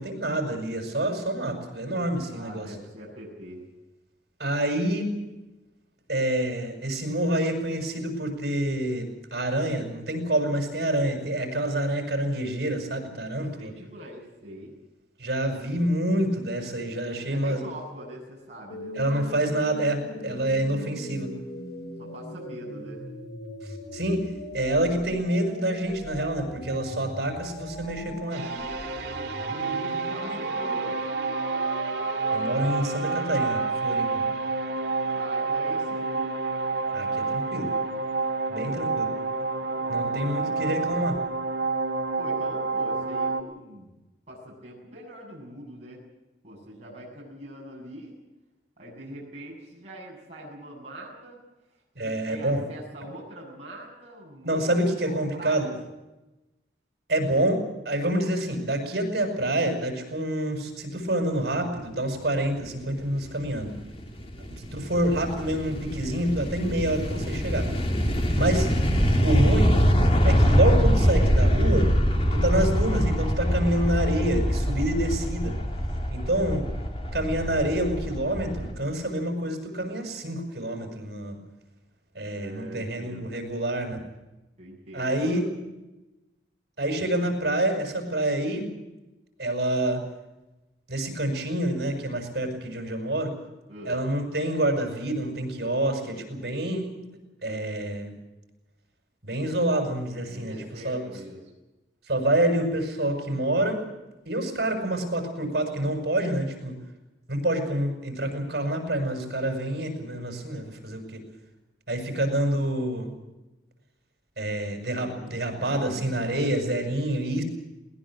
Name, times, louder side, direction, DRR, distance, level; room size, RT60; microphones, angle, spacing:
voice 1, 0.0-2.7 4.4-5.1 6.1-13.7 15.2-17.6 18.9-21.3 23.9-24.2 24.5-28.5 32.3-34.2 36.9-37.7 38.5-39.1 39.9-41.2 51.9-52.6 54.4-55.7 57.1-63.7 64.5-67.7 68.3-68.7 69.2-69.7 70.2-71.9 72.3-75.5 76.1-76.6 77.1-81.3 82.1-84.0 84.9-85.4 86.8-88.7 89.4-90.0 90.9-93.3 93.8-96.9 97.4-98.1 99.2-100.5 100.8-101.0 102.1-103.8 104.2-106.7 107.3-111.2 111.9-113.1 114.4-117.4, right 1 dB, 65° right, 4 dB, 6.9 m, -27 dB
voice 2, 2.3-3.7 13.6-14.8 17.2-19.2 20.2-20.5 22.0-23.0 29.5-31.1 35.1-36.3 39.5-40.9 42.2-44.0 44.3-46.0 46.4-48.2 48.8-51.4 52.0-55.8 72.4-72.7 82.3-83.3 84.6-85.4 93.7-94.0 100.3-101.4 114.9-115.4 115.6-116.5, right 1 dB, 40° right, -4 dB, 7.6 m, -42 dB
sound 1, 18.7-33.7, left 1 dB, 80° left, 7.4 m, -39 dB
sound 2, 28.3-43.4, right 3 dB, 80° right, 2.0 m, -28 dB
sound 3, 63.2-78.7, equal, 35° left, 2.6 m, -24 dB
21.0 x 19.5 x 7.7 m, 1.0 s
head